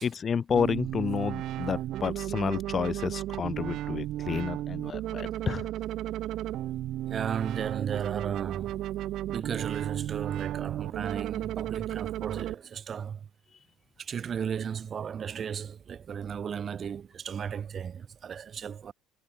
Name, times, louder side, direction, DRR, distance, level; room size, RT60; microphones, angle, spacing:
voice 1, 0.0-5.6, left 6 dB, 35° left, 1.7 m, -30 dB
sound 1, 0.5-12.5, right 13 dB, 60° right, 7.1 m, -34 dB
voice 2, 7.1-8.8 9.3-13.2 14.0-18.9, right 7 dB, 40° right, 3.0 m, -35 dB
supercardioid pair, 85°, 0 cm